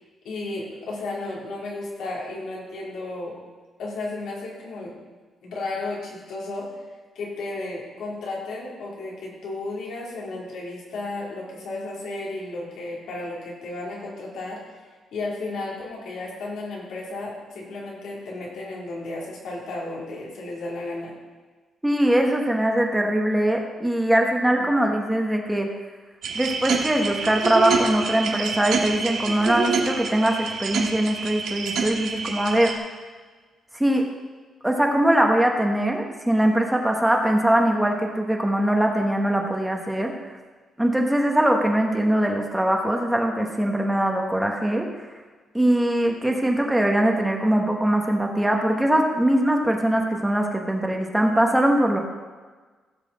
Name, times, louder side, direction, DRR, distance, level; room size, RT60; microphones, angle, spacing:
voice 1, 0.2-3.3 3.8-5.0 5.4-6.7 7.1-14.6 15.1-21.1 24.6-24.7, left 2 dB, 85° left, -4 dB, 3.2 m, -33 dB
voice 2, 21.8-25.7 26.3-32.7 33.8-34.0 34.6-40.1 40.8-44.9 45.5-52.0, right 1 dB, 5° right, 2 dB, 1.1 m, -21 dB
sound 1, 26.2-32.7, right 5 dB, 70° right, 1.4 m, -27 dB
16.5 x 6.6 x 4.2 m, 1.4 s
cardioid pair, 140°, 0 cm